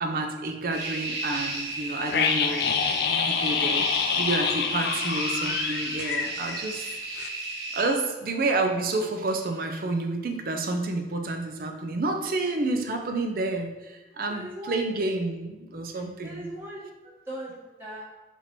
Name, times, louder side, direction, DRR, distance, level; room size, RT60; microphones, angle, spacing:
voice 1, 0.0-2.8 3.2-7.0 7.7-16.5, right 2 dB, 55° right, 4 dB, 0.5 m, -29 dB
sound 1, 0.7-7.8, right 2 dB, 75° right, 1.3 m, -34 dB
sound 2, 2.1-6.9 7.2-7.3, left 6 dB, 60° left, 0.3 m, -27 dB
voice 2, 14.3-14.8 15.9-18.0, right 1 dB, 15° right, -9 dB, 1.2 m, -40 dB
4.6 x 2.7 x 4.3 m, 1.1 s
head